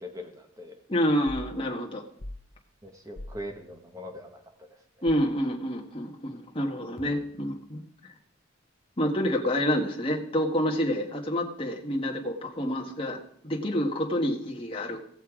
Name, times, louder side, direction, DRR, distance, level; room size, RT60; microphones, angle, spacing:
voice 1, 0.0-0.8 2.8-4.7, left 1 dB, 15° right, 4 dB, 1.5 m, -41 dB
voice 2, 0.9-2.0 5.0-7.8 9.0-15.0, equal, 25° left, 0 dB, 1.6 m, -28 dB
sound 1, 1.3-1.5 2.2-2.5 3.2-3.4 5.1-5.4 7.0-7.5, left 1 dB, 45° left, 1.0 m, -42 dB
17.0 x 6.9 x 4.9 m, 0.67 s
head